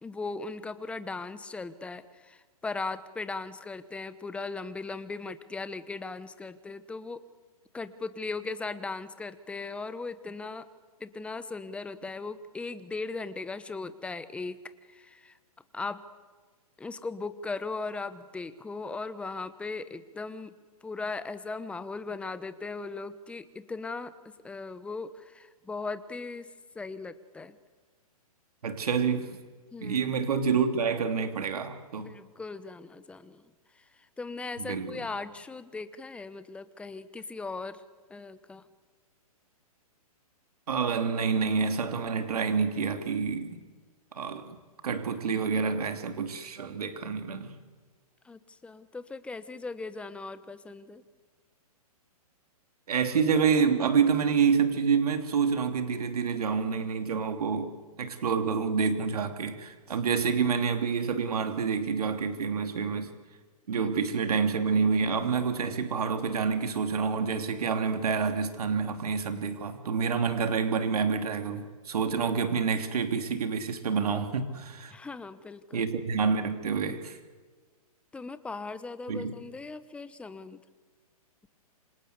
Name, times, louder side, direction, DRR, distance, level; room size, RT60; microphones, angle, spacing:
voice 1, 0.0-7.2 7.7-10.6 11.0-14.6 14.9-15.4 15.7-16.0 16.8-20.5 20.8-26.5 26.7-27.6 29.7-30.1 32.0-33.4 33.7-33.9 34.2-37.8 38.1-38.6 48.2-51.0 63.8-63.9 74.9-75.9 78.1-80.6, left 3 dB, 5° left, 13 dB, 1.0 m, -38 dB
voice 2, 28.6-29.4 29.8-32.1 34.6-35.0 40.7-43.6 44.1-44.5 44.8-47.5 52.9-57.7 58.0-63.1 63.7-74.9 75.7-77.2 79.1-79.3, right 6 dB, 75° right, 7 dB, 3.1 m, -28 dB
27.0 x 26.5 x 8.2 m, 1.4 s
hypercardioid pair, 145°, 20 cm